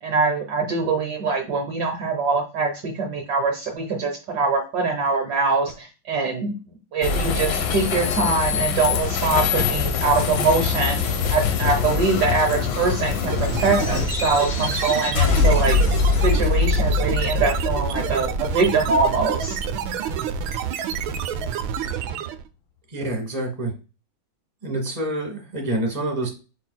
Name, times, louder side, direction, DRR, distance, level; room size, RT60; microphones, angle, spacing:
voice 1, 0.0-15.8 16.2-19.6, right 4 dB, 60° right, 1 dB, 1.4 m, -23 dB
sound 1, 7.0-20.4, left 5 dB, 75° left, 1.4 m, -23 dB
sound 2, 13.3-22.5, right 8 dB, 90° right, 1.4 m, -28 dB
voice 2, 22.9-23.7 24.6-26.3, right 1 dB, 20° right, 2 dB, 1.3 m, -27 dB
4.9 x 3.9 x 2.2 m, 0.32 s
omnidirectional pair, 2.1 m